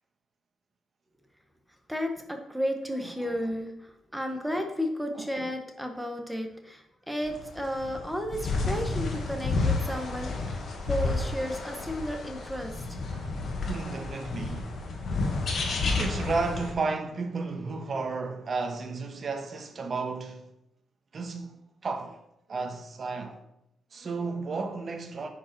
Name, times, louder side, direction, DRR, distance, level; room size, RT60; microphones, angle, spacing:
voice 1, 1.7-13.1, equal, ahead, 1.2 m, -33 dB
sound 1, 7.2-16.7, left 3 dB, 50° left, 1.9 m, -31 dB
voice 2, 13.7-14.7 15.9-20.5 21.1-21.6 21.8-22.2 22.5-23.4 23.9-25.3, right 4 dB, 35° right, 1.3 m, -33 dB
9.7 x 5.2 x 6.1 m
cardioid pair, 150°, 0 cm